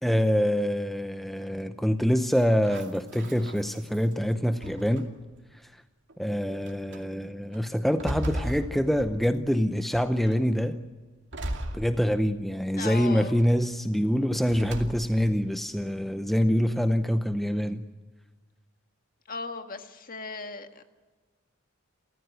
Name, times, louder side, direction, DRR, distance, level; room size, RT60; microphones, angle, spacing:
voice 1, 0.0-5.1 6.2-10.8 11.7-17.8, equal, ahead, 0.7 m, -25 dB
sound 1, 2.2-4.1 4.6-5.3 6.1-6.2 6.7-7.0 7.5-9.5 9.9-10.4 11.3-12.5 12.9-13.5 14.5-15.3, right 1 dB, 60° right, 2.5 m, -37 dB
voice 2, 12.8-13.4 19.3-20.9, left 3 dB, 45° left, 1.8 m, -37 dB
29.5 x 14.0 x 9.6 m
head